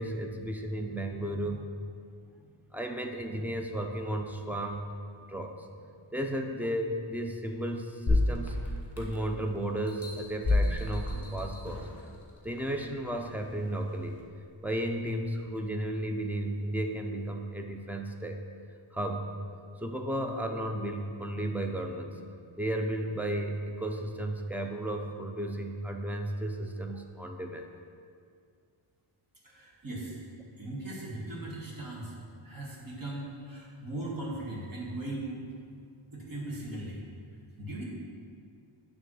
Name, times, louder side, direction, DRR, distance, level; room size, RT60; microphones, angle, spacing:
voice 1, 0.0-1.7 2.7-4.9 5.3-5.7 6.1-11.9 12.4-14.2 14.6-18.4 18.9-19.3 19.8-22.2 22.6-27.7, right 1 dB, 5° right, 3 dB, 0.4 m, -34 dB
sound 1, 8.1-9.4 9.9-12.0 12.6-12.7, left 2 dB, 30° left, 1.4 m, -29 dB
voice 2, 29.4-30.2 30.6-32.2 32.4-35.5 36.1-37.0 37.6-37.8, right 1 dB, 45° right, -5 dB, 1.9 m, -38 dB
9.2 x 3.6 x 6.3 m, 2.3 s
wide cardioid pair, 150°, 49 cm